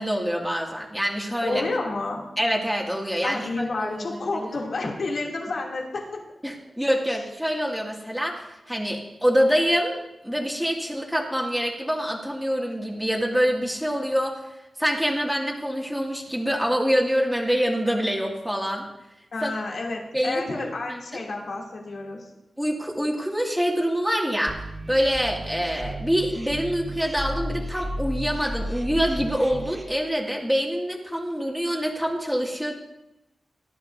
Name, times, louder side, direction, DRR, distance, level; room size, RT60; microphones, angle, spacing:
voice 1, 0.0-1.6 2.4-4.5 6.4-14.4 14.8-18.8 19.4-19.5 20.1-21.2 22.6-24.6 24.9-32.7, equal, ahead, -2 dB, 2.2 m, -25 dB
voice 2, 1.4-2.2 3.2-6.2 19.3-22.3, left 3 dB, 70° left, -2 dB, 2.7 m, -30 dB
sound 1, 24.5-29.8, right 1 dB, 20° right, 2.5 m, -33 dB
19.0 x 12.0 x 2.7 m, 0.90 s
wide cardioid pair, 100°, 0 cm